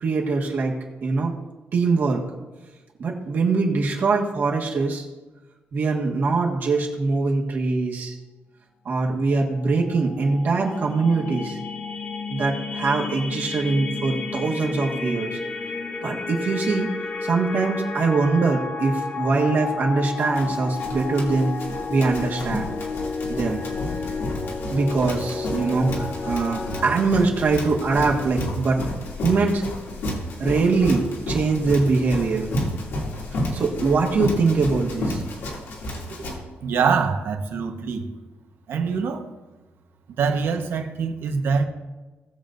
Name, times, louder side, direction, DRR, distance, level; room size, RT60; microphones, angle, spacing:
voice 1, 0.0-1.3 1.7-2.2 3.0-5.0 5.7-8.1 8.8-11.6 12.3-15.4 16.0-16.9 17.2-21.6 21.9-22.7 23.3-23.6 24.7-28.8 29.2-29.6 30.4-32.5 33.5-35.2 36.1-36.3, right 4 dB, 50° right, -1 dB, 1.6 m, -22 dB
sound 1, 9.4-26.9, left 4 dB, 30° left, 0.6 m, -32 dB
Run, 20.2-36.4, left 1 dB, 70° left, 2.5 m, -31 dB
voice 2, 36.6-38.1 38.7-39.2 40.2-41.6, right 5 dB, 65° right, 4 dB, 1.2 m, -24 dB
18.5 x 7.1 x 2.6 m, 1.2 s
wide cardioid pair, 165°, 4 cm